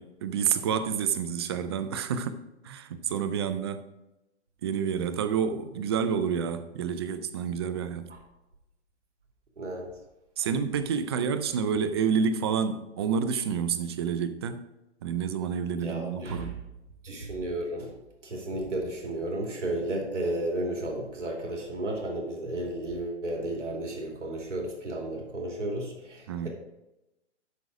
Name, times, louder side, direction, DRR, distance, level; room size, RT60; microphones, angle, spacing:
voice 1, 0.0-3.9 4.6-8.1 10.4-14.7 15.0-16.6 26.3-26.5, right 7 dB, 25° right, 0.4 m, -29 dB
voice 2, 9.6-9.9 15.8-16.5 17.0-17.9 18.2-26.5, right 1 dB, 85° right, 2.7 m, -33 dB
8.3 x 6.2 x 4.8 m
hypercardioid pair, 140°, 35 cm